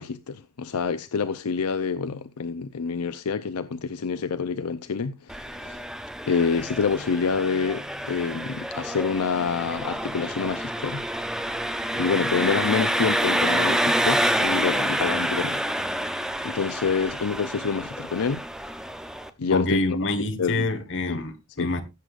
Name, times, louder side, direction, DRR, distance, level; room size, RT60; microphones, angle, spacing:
voice 1, 0.0-5.8 6.3-11.0 11.9-15.6 16.4-18.4 19.4-20.0 20.4-20.7 21.1-21.2 21.6-21.7, left 5 dB, 80° left, 0.6 m, -27 dB
Engine, 5.3-19.3, right 1 dB, 5° right, 0.6 m, -28 dB
voice 2, 19.5-21.8, left 2 dB, 55° left, 1.4 m, -26 dB
17.0 x 7.8 x 2.5 m
head